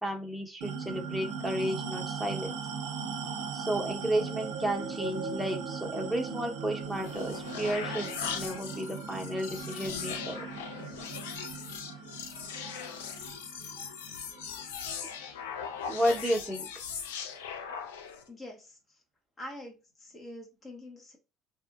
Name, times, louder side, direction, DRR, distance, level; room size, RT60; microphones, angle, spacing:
voice 1, 0.0-2.6 3.5-10.4 12.6-12.7 15.9-16.7, equal, ahead, 0 dB, 1.0 m, -32 dB
sound 1, 0.6-15.4, right 5 dB, 80° right, 0.4 m, -39 dB
sound 2, 6.8-18.3, left 7 dB, 90° left, 0.4 m, -39 dB
voice 2, 18.3-18.8 19.4-21.2, left 1 dB, 30° left, 1 dB, 0.9 m, -45 dB
2.8 x 2.4 x 2.4 m, 0.29 s
hypercardioid pair, 75°, 0 cm